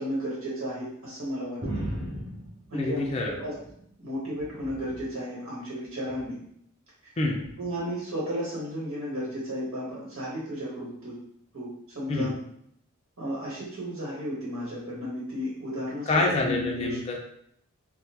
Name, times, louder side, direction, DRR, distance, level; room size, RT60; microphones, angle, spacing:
voice 1, 0.0-1.6 2.7-3.5 4.0-6.4 7.6-11.2 11.5-11.7 11.9-12.3 13.2-16.1 16.4-17.0, equal, 65° right, -7 dB, 1.1 m, -33 dB
sound 1, 1.6-3.8 4.2-5.1 6.0-6.4 7.4-7.5, right 1 dB, 25° right, 0.6 m, -37 dB
voice 2, 2.7-3.4 7.2-7.4 12.1-12.3 16.1-17.2, left 2 dB, 30° left, 0 dB, 0.4 m, -26 dB
3.5 x 2.1 x 2.8 m, 0.70 s
head